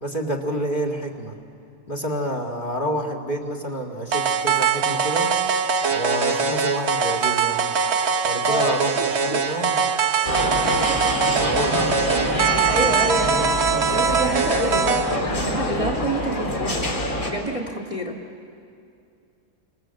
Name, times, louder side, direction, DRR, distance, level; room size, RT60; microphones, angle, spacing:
voice 1, 0.0-1.4 1.9-5.3 5.9-7.6 8.2-9.8 10.2-10.8 11.4-11.9, right 1 dB, 25° left, 1 dB, 2.3 m, -28 dB
sound 1, 4.1-15.2, right 6 dB, 45° right, 1.0 m, -22 dB
voice 2, 8.4-9.5 11.6-12.4 12.7-13.5 13.9-16.9 17.3-18.2, right 1 dB, 20° right, 1 dB, 1.7 m, -28 dB
sound 2, 10.2-17.3, left 1 dB, 45° left, 3.7 m, -26 dB
29.0 x 26.0 x 7.7 m, 2.5 s
omnidirectional pair, 2.0 m